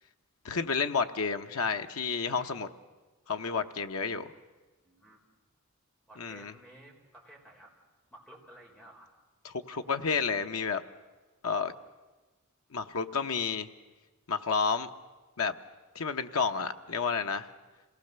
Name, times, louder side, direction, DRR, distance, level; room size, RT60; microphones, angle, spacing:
voice 1, 0.4-2.7 3.3-4.3 6.2-6.5 9.4-10.8 11.4-11.7 12.7-13.7 14.3-14.9 15.4-15.5 15.9-17.5, left 5 dB, 90° left, 7 dB, 0.9 m, -30 dB
voice 2, 4.8-5.2 6.1-7.7 8.1-9.1, right 1 dB, 5° left, -1 dB, 3.9 m, -54 dB
27.0 x 18.5 x 6.8 m, 1.2 s
head